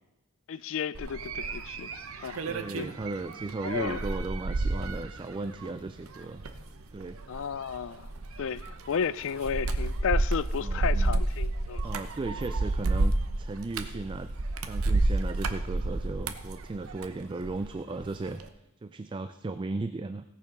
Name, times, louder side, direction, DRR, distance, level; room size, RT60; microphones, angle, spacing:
voice 1, 0.5-1.9 2.2-2.4 2.8-2.9 3.6-4.0 7.3-8.1 8.4-11.8, left 7 dB, 65° left, 0.4 m, -33 dB
sound 1, 0.9-17.7 18.0-18.4, right 2 dB, 80° right, 0.8 m, -31 dB
voice 2, 2.4-6.5 6.9-7.2 10.6-11.2 11.8-14.3 14.6-18.4 18.8-20.2, right 3 dB, 25° right, 0.3 m, -36 dB
17.0 x 6.7 x 5.3 m
head